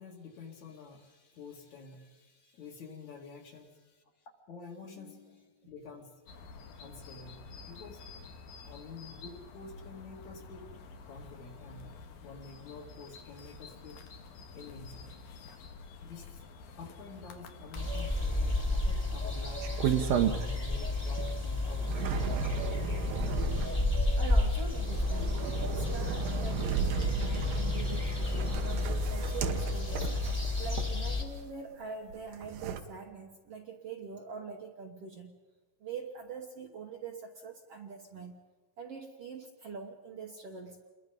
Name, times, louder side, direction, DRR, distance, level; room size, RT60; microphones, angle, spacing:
voice 1, 0.0-6.2 6.8-8.2 8.6-10.7 11.1-15.2 15.5-15.6 16.0-22.3 23.0-23.5, left 4 dB, 55° left, 1 dB, 3.7 m, -49 dB
sound 1, 6.3-18.7, left 4 dB, 80° left, 3.4 m, -49 dB
sound 2, 17.7-31.2, left 2 dB, 15° left, 1.7 m, -31 dB
sound 3, 19.6-20.8 21.2-31.4 32.1-32.8, right 8 dB, 85° right, 2.9 m, -34 dB
voice 2, 24.2-30.1 30.6-35.4 35.8-38.4 38.8-40.8, right 5 dB, 55° right, 2 dB, 1.9 m, -44 dB
28.5 x 22.5 x 5.4 m, 1.2 s
omnidirectional pair, 4.0 m